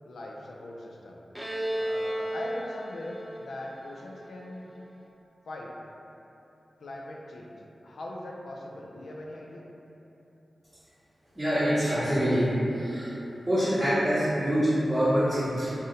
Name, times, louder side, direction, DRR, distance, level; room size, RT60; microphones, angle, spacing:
voice 1, 0.1-1.2 1.7-4.7 5.4-5.7 6.8-9.6, left 1 dB, 85° left, -2 dB, 0.3 m, -40 dB
Bowed string instrument, 1.3-4.9, right 1 dB, 5° right, 0.3 m, -34 dB
voice 2, 11.4-13.1 13.4-15.7, equal, 25° right, -13 dB, 0.7 m, -25 dB
2.6 x 2.1 x 3.8 m, 3.0 s
cardioid pair, 65°, 0 cm